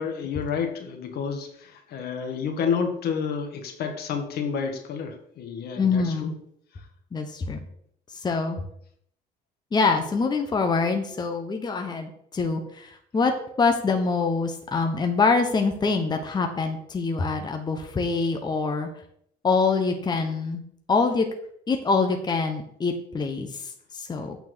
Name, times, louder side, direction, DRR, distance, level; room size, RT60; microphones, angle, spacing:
voice 1, 0.0-6.3, left 6 dB, 70° left, 4 dB, 1.8 m, -30 dB
voice 2, 5.8-6.3 7.1-7.6 8.1-8.6 9.7-13.3 13.6-18.9 19.4-20.6 20.9-21.3 21.7-24.4, left 4 dB, 25° left, 4 dB, 1.0 m, -25 dB
8.6 x 4.5 x 6.2 m, 0.67 s
cardioid pair, 110°, 17 cm